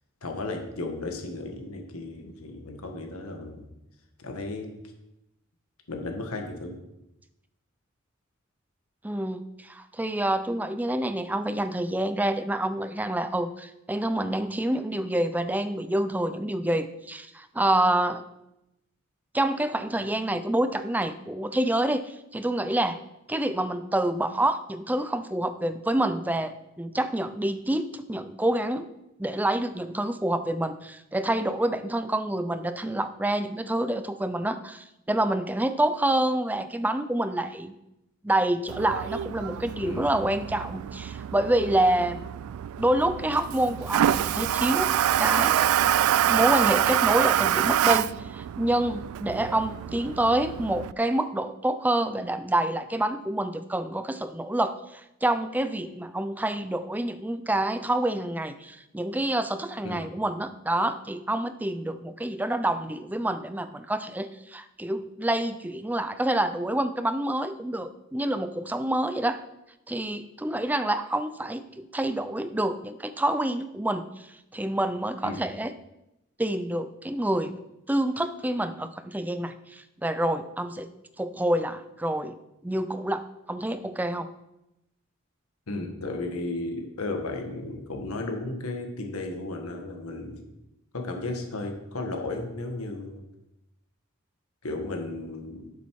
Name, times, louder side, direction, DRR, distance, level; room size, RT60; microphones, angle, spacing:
voice 1, 0.2-3.6 4.2-4.7 5.9-6.8 39.8-40.1 59.8-60.0 75.2-75.4 85.7-90.4 90.9-93.2 94.6-95.7, left 2 dB, 90° left, 3 dB, 1.5 m, -34 dB
voice 2, 9.0-18.2 19.3-23.0 23.3-28.9 29.2-37.7 38.2-42.3 42.8-44.9 45.2-45.6 46.2-69.4 69.9-75.7 76.4-77.5 77.9-80.9 81.2-82.4 82.6-84.3, right 1 dB, 10° right, 11 dB, 0.4 m, -27 dB
Toilet flush, 38.7-50.9, right 11 dB, 85° right, 0.3 m, -26 dB
11.5 x 7.1 x 4.7 m, 0.89 s
head